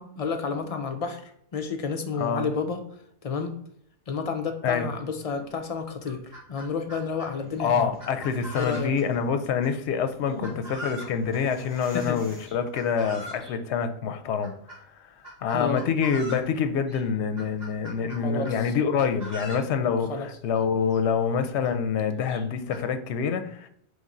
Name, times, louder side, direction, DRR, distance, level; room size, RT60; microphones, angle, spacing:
voice 1, 0.0-2.8 3.2-3.6 4.1-7.9 8.5-8.9 10.3-10.6 11.9-12.2 15.5-15.8 18.2-18.5 20.1-20.3, left 5 dB, 50° left, 6 dB, 0.4 m, -31 dB
voice 2, 2.2-2.5 4.6-4.9 7.6-15.1 15.4-23.7, left 6 dB, 80° left, 9 dB, 0.8 m, -26 dB
Chicken rooster, 5.4-5.5 5.9-7.3 8.0-9.1 10.4-11.2 12.4-13.5 14.4-14.8 15.2-16.5 16.9-17.0 17.4-18.6 19.0-19.7 20.6-20.7 20.9-21.0 21.6-21.7 22.3-22.8, equal, 40° right, 1.4 m, -41 dB
sound 1, 7.2-13.4, equal, 10° left, 1.6 m, -51 dB
4.1 x 3.3 x 3.7 m, 0.69 s
omnidirectional pair, 1.1 m